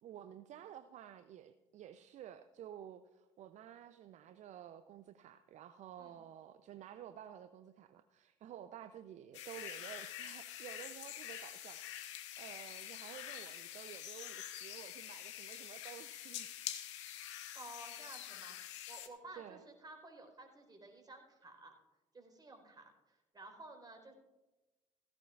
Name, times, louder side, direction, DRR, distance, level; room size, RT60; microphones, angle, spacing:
voice 1, 0.0-11.8 12.4-16.5 19.4-19.6, right 10 dB, 50° right, 11 dB, 0.6 m, -52 dB
sound 1, 9.3-19.1, left 12 dB, 80° left, 0.9 m, -46 dB
voice 2, 17.5-18.6 18.9-21.7 22.1-24.1, right 2 dB, 25° right, 3 dB, 4.1 m, -54 dB
16.0 x 16.0 x 2.4 m, 1.1 s
hypercardioid pair, 55°, 15 cm